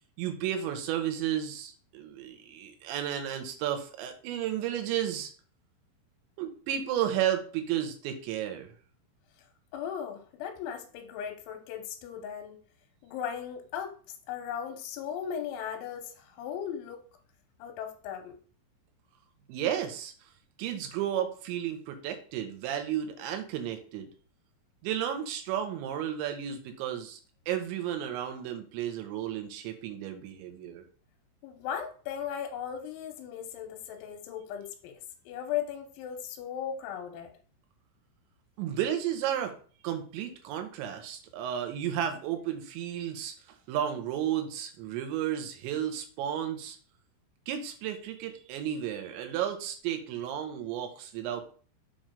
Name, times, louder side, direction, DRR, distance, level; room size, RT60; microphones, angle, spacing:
voice 1, 0.2-5.3 6.4-8.7 19.5-20.1 20.6-24.1 24.8-27.2 27.5-30.8 38.6-39.5 39.8-46.8 47.5-51.5, right 10 dB, 80° right, 6 dB, 3.1 m, -33 dB
voice 2, 9.7-12.6 13.0-14.0 14.3-17.0 17.6-18.4 31.4-35.0 35.3-37.3, left 8 dB, 85° left, 4 dB, 3.1 m, -37 dB
7.4 x 3.0 x 5.2 m, 0.41 s
omnidirectional pair, 5.5 m